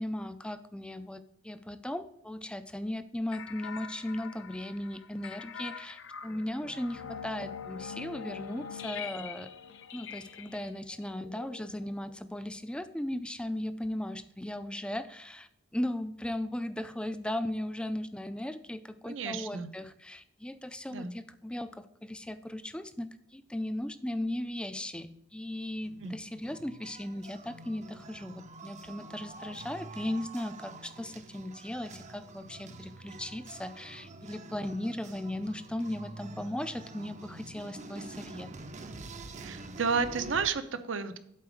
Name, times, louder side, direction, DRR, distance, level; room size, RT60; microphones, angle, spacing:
voice 1, 0.0-9.5 9.9-38.5, left 1 dB, 5° left, 12 dB, 0.4 m, -37 dB
sound 1, 3.3-12.2, left 7 dB, 65° left, 0.7 m, -44 dB
voice 2, 19.0-19.7 20.9-21.1 26.0-26.1 39.4-41.2, right 5 dB, 65° right, 10 dB, 0.7 m, -32 dB
sound 2, 25.8-40.5, right 2 dB, 35° right, 0.6 m, -47 dB
8.5 x 4.1 x 6.2 m, 0.74 s
head